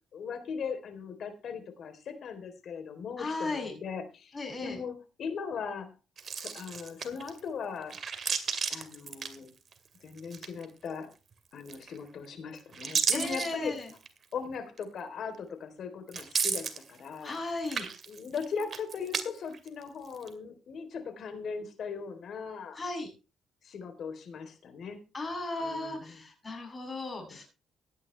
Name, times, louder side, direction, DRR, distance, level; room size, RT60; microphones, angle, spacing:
voice 1, 0.1-5.9 6.4-8.0 8.7-9.5 10.0-11.1 11.5-13.8 14.3-17.4 18.1-22.8 23.6-25.0 25.6-26.2 27.3-27.4, left 6 dB, 60° left, 9 dB, 3.5 m, -39 dB
voice 2, 3.2-3.7 4.3-4.8 13.1-13.9 17.2-17.9 22.7-23.1 25.1-27.4, left 2 dB, 25° left, 1 dB, 7.8 m, -35 dB
sound 1, 6.2-7.4 7.8-9.9 10.2-10.9 11.6-12.2 12.6-14.2 14.8-14.9 16.1-17.4 17.6-19.2 19.5-20.3, right 6 dB, 50° right, 2.2 m, -33 dB
16.5 x 11.0 x 3.3 m, 0.30 s
cardioid pair, 90°, 0 cm